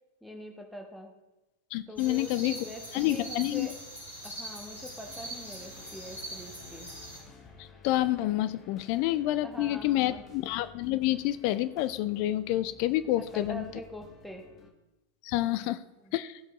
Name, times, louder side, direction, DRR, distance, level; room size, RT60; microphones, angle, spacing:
voice 1, 0.2-1.1 1.9-3.7 4.2-6.9 9.4-10.2 13.3-14.5 15.4-16.1, equal, ahead, 2 dB, 1.3 m, -44 dB
voice 2, 1.7-2.6 2.9-3.7 7.6-13.6 15.2-15.8 16.1-16.4, left 15 dB, 45° left, 14 dB, 0.4 m, -28 dB
sound 1, 2.0-7.2, right 1 dB, 90° left, 3.1 m, -42 dB
sound 2, 5.0-14.7, left 4 dB, 25° left, 1.2 m, -54 dB
15.0 x 5.3 x 4.0 m, 1.0 s
figure-of-eight pair, 90°, 0 cm